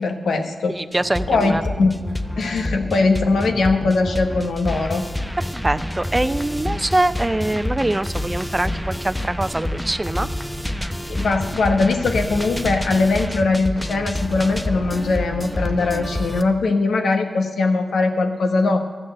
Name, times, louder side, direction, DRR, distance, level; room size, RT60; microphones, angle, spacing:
voice 1, 0.0-0.7 1.3-1.9 2.4-5.0 11.1-18.8, left 3 dB, 80° left, 5 dB, 1.2 m, -20 dB
voice 2, 0.7-1.6 5.4-10.3, right 1 dB, 20° right, 13 dB, 0.6 m, -23 dB
sound 1, 0.9-16.4, left 1 dB, 5° left, 0.8 m, -28 dB
13.5 x 6.5 x 8.7 m, 1.4 s
cardioid pair, 50°, 0 cm